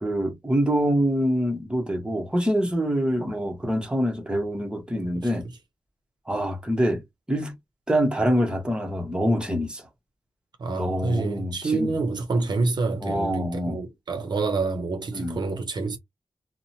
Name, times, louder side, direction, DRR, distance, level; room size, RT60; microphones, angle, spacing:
voice 1, 0.0-5.5 6.3-7.0 7.3-7.5 7.9-9.8 10.8-11.9 13.0-13.8 15.1-15.4, equal, 10° right, 0.9 m, -25 dB
voice 2, 4.9-5.3 10.6-16.0, right 3 dB, 65° right, 0.7 m, -28 dB
2.8 x 2.1 x 2.6 m
wide cardioid pair, 105°, 8 cm